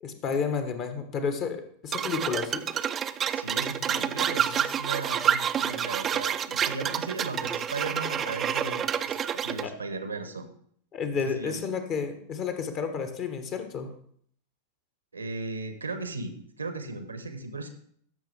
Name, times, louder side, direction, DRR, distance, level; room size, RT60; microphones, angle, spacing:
voice 1, 0.0-2.6 9.6-9.7 10.9-13.9, left 6 dB, 35° left, 8 dB, 1.2 m, -31 dB
sound 1, 1.9-9.7, right 8 dB, 25° right, 0.4 m, -28 dB
voice 2, 3.3-10.5 11.2-11.6 15.1-17.7, right 3 dB, 75° right, 9 dB, 1.0 m, -36 dB
13.5 x 6.2 x 3.4 m, 0.63 s
figure-of-eight pair, 90°, 0 cm